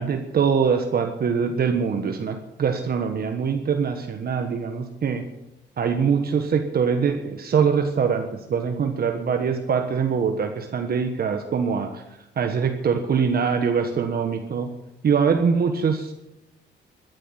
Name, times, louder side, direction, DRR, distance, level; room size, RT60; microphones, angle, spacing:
voice 1, 0.0-5.2 5.8-12.0 12.4-14.7 15.0-16.1, right 6 dB, 50° right, 5 dB, 1.4 m, -23 dB
13.0 x 11.5 x 7.4 m, 0.92 s
cardioid pair, 90°, 20 cm